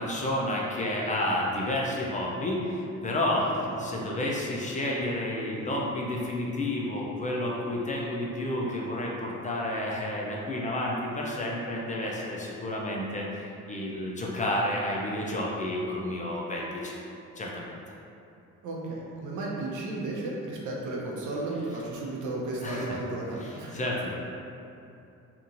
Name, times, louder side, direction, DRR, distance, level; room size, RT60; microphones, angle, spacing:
voice 1, 0.0-3.5 3.8-17.0 17.4-17.7 22.6-22.9 23.4-24.1, left 1 dB, 25° left, -3 dB, 0.4 m, -30 dB
voice 2, 3.4-3.8 18.6-23.8, right 2 dB, 75° right, -3 dB, 0.7 m, -34 dB
2.8 x 2.5 x 2.5 m, 2.7 s
cardioid pair, 90°, 30 cm